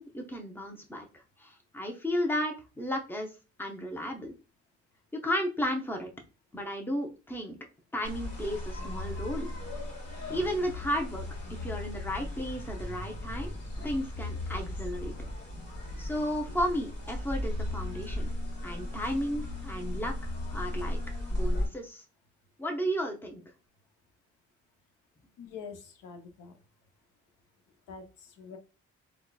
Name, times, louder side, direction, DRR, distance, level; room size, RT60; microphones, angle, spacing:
voice 1, 0.0-3.3 3.6-4.3 5.2-6.1 6.5-7.5 7.9-9.5 10.3-11.2 11.5-13.5 13.8-15.1 16.0-18.3 18.6-20.1 20.5-21.0 21.3-22.0 22.6-23.4, equal, 5° left, 3 dB, 0.7 m, -33 dB
sound 1, 8.0-21.7, left 1 dB, 50° left, 1.5 m, -36 dB
voice 2, 25.4-26.6 27.9-28.6, left 6 dB, 90° left, 6 dB, 0.7 m, -45 dB
3.7 x 2.3 x 2.3 m, 0.31 s
cardioid pair, 90°, 30 cm